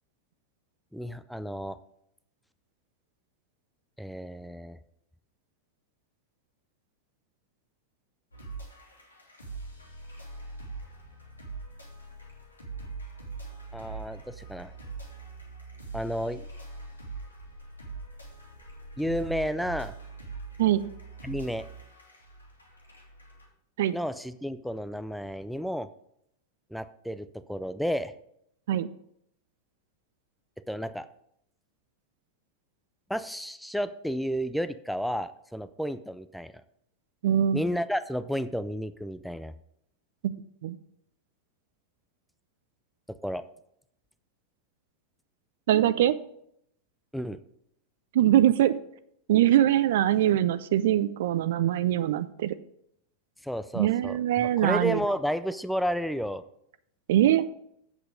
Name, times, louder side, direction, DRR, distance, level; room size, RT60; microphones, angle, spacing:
voice 1, 0.9-1.8 4.0-4.8 13.7-14.7 15.9-16.5 19.0-19.9 21.2-21.7 23.9-25.9 26.7-28.1 30.7-31.1 33.1-36.5 37.5-39.5 43.1-43.4 47.1-47.4 53.4-56.4, equal, ahead, 13 dB, 0.4 m, -32 dB
sound 1, 8.3-23.5, right 3 dB, 80° left, 2.3 m, -42 dB
voice 2, 37.2-37.6 40.2-40.3 40.6-40.8 45.7-46.1 48.1-48.8 49.3-52.6 53.7-55.0 57.1-57.5, right 12 dB, 55° right, 15 dB, 0.5 m, -22 dB
7.9 x 7.5 x 5.0 m, 0.73 s
figure-of-eight pair, 90°, 0 cm